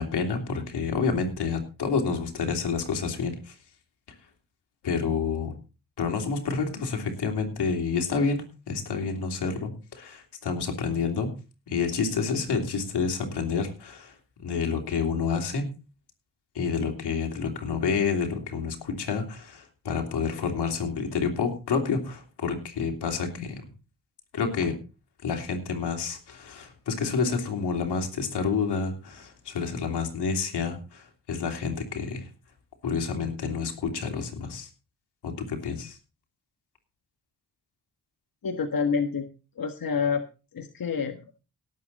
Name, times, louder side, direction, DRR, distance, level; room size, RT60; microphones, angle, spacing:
voice 1, 0.0-3.5 4.8-5.5 6.0-11.3 11.7-14.1 14.4-15.6 16.5-23.6 24.3-24.7 25.2-32.2 32.8-34.7 35.2-36.0, left 5 dB, 85° left, 3 dB, 3.1 m, -29 dB
voice 2, 38.4-39.3 39.6-40.2 40.5-41.2, left 5 dB, 60° left, 6 dB, 1.6 m, -27 dB
18.0 x 7.8 x 4.1 m, 0.33 s
cardioid pair, 45°, 39 cm